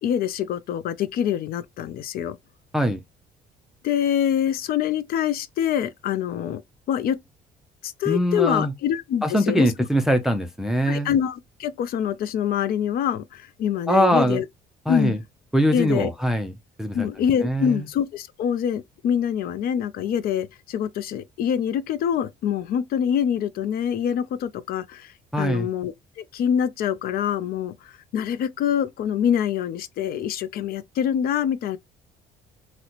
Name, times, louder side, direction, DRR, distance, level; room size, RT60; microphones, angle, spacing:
voice 1, 0.0-2.4 3.8-6.6 6.9-7.2 7.8-9.7 10.9-14.4 14.9-15.2 15.7-16.1 16.9-31.8, left 9 dB, 60° left, 0.4 m, -25 dB
voice 2, 8.1-8.7 9.2-11.2 13.9-14.4 14.9-15.2 15.5-16.5 16.8-17.1 17.4-17.9 25.3-25.7, equal, ahead, 0.4 m, -22 dB
4.0 x 2.1 x 2.9 m
cardioid pair, 110°, 17 cm